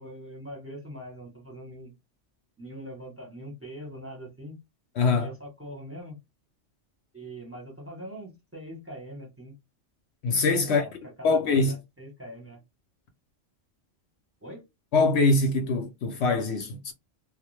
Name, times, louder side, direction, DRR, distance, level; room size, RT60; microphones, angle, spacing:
voice 1, 0.0-1.9 2.6-4.6 5.1-6.2 7.1-9.5 10.6-10.9 11.2-12.6 14.4-14.6, right 1 dB, 10° right, 0.8 m, -42 dB
voice 2, 5.0-5.3 10.2-10.8 11.2-11.7 14.9-16.9, left 3 dB, 70° left, 0.8 m, -23 dB
2.3 x 2.1 x 3.1 m
omnidirectional pair, 1.3 m